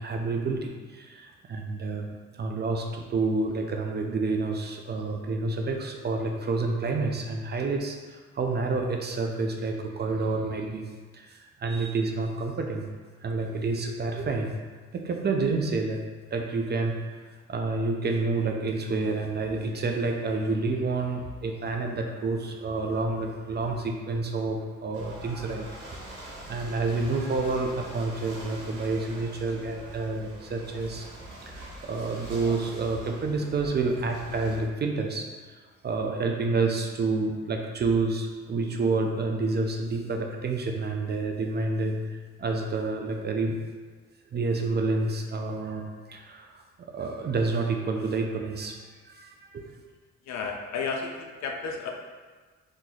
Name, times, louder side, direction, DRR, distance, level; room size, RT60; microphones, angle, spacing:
voice 1, 0.0-2.1 2.3-10.8 11.1-12.9 13.2-14.5 14.9-16.0 16.3-16.9 17.5-25.7 26.5-31.1 31.5-35.3 35.8-43.6 44.3-46.6 46.9-48.8 49.1-49.7, right 3 dB, 35° right, 2 dB, 0.4 m, -29 dB
Ocean / Boat Water vehicle, 24.9-34.6, right 1 dB, 80° right, 1.0 m, -43 dB
voice 2, 50.2-51.9, left 4 dB, 65° left, 2 dB, 0.5 m, -32 dB
2.9 x 2.5 x 3.9 m, 1.4 s
cardioid pair, 90°, 30 cm